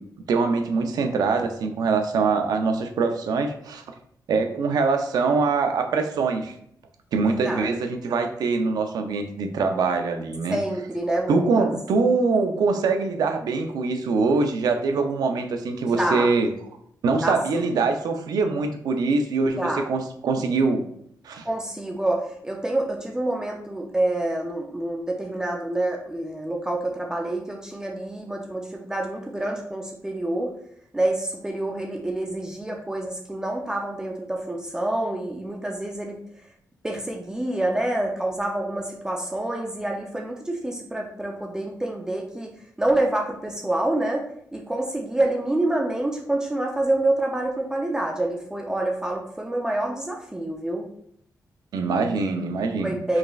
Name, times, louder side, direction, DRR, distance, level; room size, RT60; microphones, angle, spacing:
voice 1, 0.3-3.8 4.3-6.5 7.1-10.6 11.3-16.5 17.0-20.8 21.2-21.4 51.7-52.9, right 4 dB, 80° right, 6 dB, 0.5 m, -23 dB
voice 2, 7.3-7.7 10.5-11.7 15.9-16.3 17.1-17.8 19.6-19.9 21.4-30.5 30.9-36.2 36.8-42.5 42.8-50.9 52.8-53.2, right 1 dB, 10° right, 1 dB, 0.4 m, -27 dB
4.8 x 3.1 x 2.3 m, 0.69 s
wide cardioid pair, 160°, 7 cm